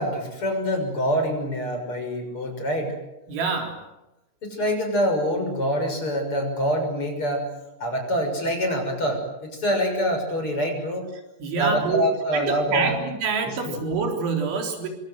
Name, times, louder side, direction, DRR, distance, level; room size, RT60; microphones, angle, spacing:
voice 1, 0.0-3.0 4.4-7.5 7.8-11.1 11.6-13.0 13.5-13.8, equal, 30° left, 4 dB, 6.9 m, -25 dB
voice 2, 3.3-3.8 11.4-12.0 12.3-14.9, right 5 dB, 90° right, 3 dB, 6.2 m, -26 dB
27.0 x 24.5 x 7.9 m, 0.95 s
omnidirectional pair, 5.2 m